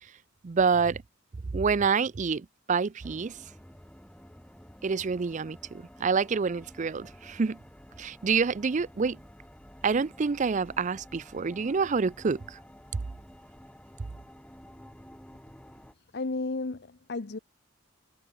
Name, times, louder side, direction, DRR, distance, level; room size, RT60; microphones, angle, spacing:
voice 1, 0.4-1.0 1.5-3.3 4.8-5.6 6.0-7.6 8.0-9.2 9.8-12.4, right 5 dB, 35° right, 0.4 m, -27 dB
sound 1, 3.0-15.9, equal, 5° left, 2.3 m, -51 dB
voice 2, 16.1-17.4, left 3 dB, 55° left, 0.8 m, -33 dB
head